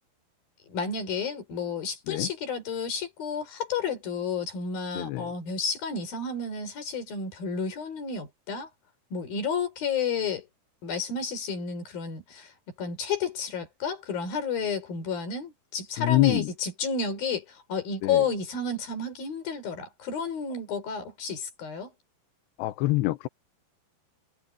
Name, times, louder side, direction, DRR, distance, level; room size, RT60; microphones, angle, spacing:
voice 1, 0.7-8.7 9.1-10.5 10.8-12.5 12.8-21.9, left 5 dB, 55° left, 6.2 m, -31 dB
voice 2, 4.9-5.3 16.0-16.5 18.0-18.2 22.6-23.3, left 18 dB, 80° left, 3.1 m, -25 dB
omnidirectional pair, 4.9 m